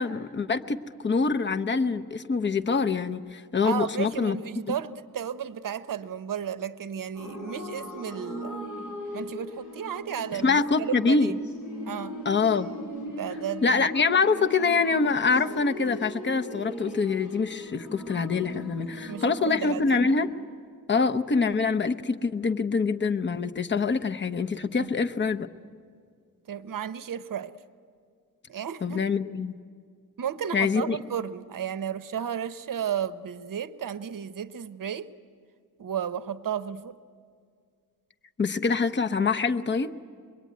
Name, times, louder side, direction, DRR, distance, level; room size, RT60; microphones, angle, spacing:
voice 1, 0.0-4.4 10.4-11.3 12.2-12.7 13.6-20.3 20.9-25.5 28.8-29.6 30.5-31.0 38.4-39.9, left 4 dB, 30° left, 8 dB, 0.8 m, -25 dB
voice 2, 3.6-8.7 9.1-11.4 11.9-12.2 13.0-13.9 19.1-20.1 24.8-24.9 26.5-27.6 28.5-29.0 30.2-35.1 35.8-37.0, right 8 dB, 65° right, 14 dB, 0.8 m, -33 dB
sound 1, 7.1-20.2, left 1 dB, 55° left, 7.1 m, -38 dB
24.0 x 22.5 x 9.3 m, 2.1 s
wide cardioid pair, 105°, 36 cm